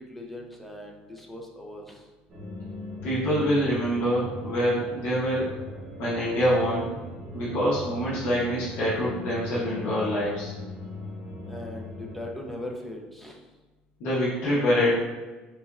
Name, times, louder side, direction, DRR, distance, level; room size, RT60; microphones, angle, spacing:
voice 1, 0.0-2.1 11.5-13.4, left 1 dB, 5° left, 0 dB, 0.5 m, -39 dB
sound 1, 2.3-12.3, left 1 dB, 25° right, 0.9 m, -39 dB
voice 2, 3.0-5.5 6.0-6.9 7.3-10.5 14.0-14.9, equal, 75° left, -7 dB, 1.2 m, -25 dB
4.0 x 3.0 x 2.4 m, 1.2 s
cardioid pair, 150°, 4 cm